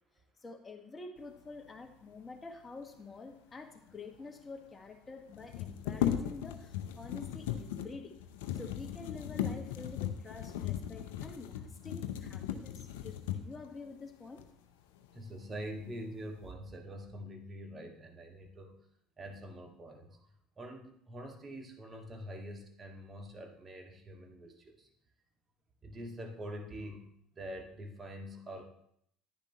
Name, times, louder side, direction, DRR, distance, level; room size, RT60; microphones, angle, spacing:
voice 1, 0.4-8.1 8.5-14.4, left 3 dB, 25° left, 4 dB, 1.6 m, -48 dB
sound 1, 3.9-4.2 5.3-13.7 14.4-14.5 14.9-15.6 15.9-16.5, left 10 dB, 75° left, 0.7 m, -37 dB
voice 2, 15.1-18.7 19.2-20.2 20.6-24.9 25.8-27.1 27.3-28.7, equal, 30° right, 3 dB, 1.8 m, -45 dB
10.5 x 10.5 x 3.0 m, 0.69 s
hypercardioid pair, 70°, 0 cm